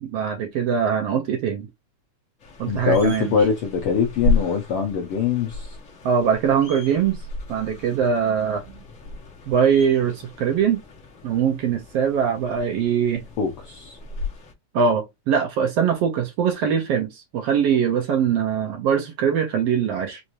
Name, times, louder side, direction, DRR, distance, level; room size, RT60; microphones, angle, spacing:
voice 1, 0.0-1.7 2.6-3.4 6.0-7.2 7.5-8.6 9.5-10.8 11.2-13.2 14.7-20.2, right 7 dB, 70° right, 1.5 m, -22 dB
sound 1, 2.4-14.5, left 3 dB, 55° left, 0.8 m, -33 dB
voice 2, 2.7-5.7 13.4-14.0, left 6 dB, 75° left, 1.2 m, -23 dB
5.1 x 2.6 x 2.9 m
omnidirectional pair, 3.4 m